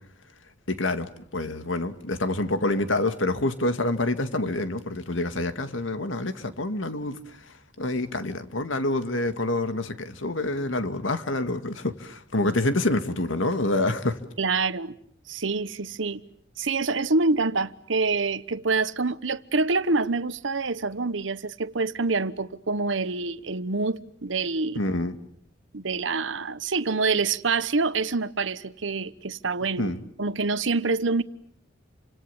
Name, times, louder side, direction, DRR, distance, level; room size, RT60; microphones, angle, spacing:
voice 1, 0.7-7.4 7.8-14.2 24.8-25.2 29.8-30.0, left 2 dB, 90° left, 2.2 m, -27 dB
voice 2, 14.4-14.9 15.3-16.3 16.6-24.8 25.7-29.9 30.2-31.2, right 3 dB, 80° right, 1.1 m, -26 dB
30.0 x 26.5 x 7.1 m
head